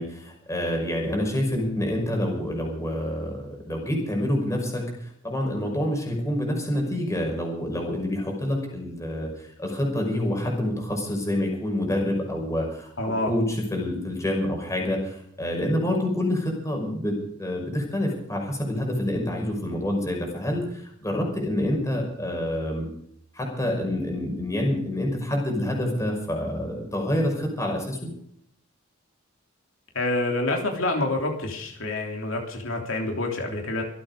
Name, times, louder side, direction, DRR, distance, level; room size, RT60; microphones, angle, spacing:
voice 1, 0.0-22.9 23.3-28.1, left 1 dB, 15° left, 0 dB, 5.5 m, -27 dB
voice 2, 13.0-13.3 29.9-33.8, left 2 dB, 75° left, 2 dB, 3.2 m, -27 dB
24.5 x 8.8 x 5.3 m, 0.69 s
head